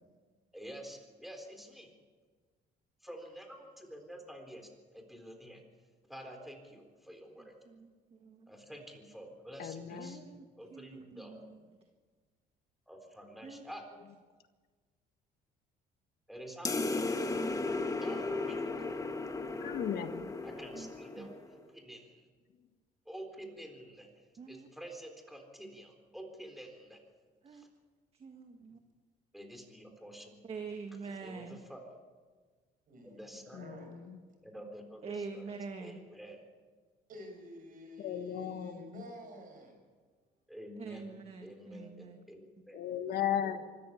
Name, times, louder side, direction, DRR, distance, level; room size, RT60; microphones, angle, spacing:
voice 1, 0.5-1.9 3.0-5.6 6.1-7.6 8.5-10.2 10.6-11.4 12.9-13.9 16.3-17.3 18.0-19.0 20.4-22.3 23.1-27.0 27.5-27.7 29.3-30.4 31.1-32.0 33.0-33.7 34.4-35.5 35.8-36.5 40.5-41.1 41.4-42.8 43.4-43.6, equal, ahead, 4 dB, 3.9 m, -49 dB
voice 2, 7.7-8.5 9.9-10.4 10.7-11.6 13.4-13.7 20.7-20.9 21.2-21.3 24.4-24.7 27.4-27.6 28.1-28.8 30.5-31.6 35.0-36.0 40.8-42.2, right 4 dB, 35° right, 6 dB, 1.7 m, -45 dB
voice 3, 9.6-10.3 19.6-20.3 33.6-34.1 38.0-38.9 42.7-43.6, left 9 dB, 65° left, 8 dB, 1.6 m, -36 dB
sound 1, 16.6-21.5, left 3 dB, 20° left, 1.5 m, -35 dB
voice 4, 32.9-34.0 37.1-39.8, equal, 55° right, 4 dB, 7.0 m, -50 dB
24.5 x 13.5 x 8.5 m, 1.5 s
cardioid pair, 110°, 17 cm